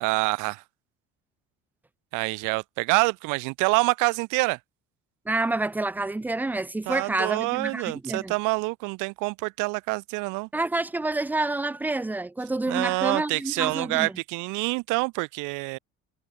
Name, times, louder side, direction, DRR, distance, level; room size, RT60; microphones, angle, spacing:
voice 1, 0.0-0.6 2.1-4.6 6.9-10.5 12.7-15.8, right 27 dB, 80° right, 0.5 m, -26 dB
voice 2, 5.3-8.3 10.5-14.1, right 2 dB, 5° right, 0.4 m, -28 dB
cardioid pair, 105°, 31 cm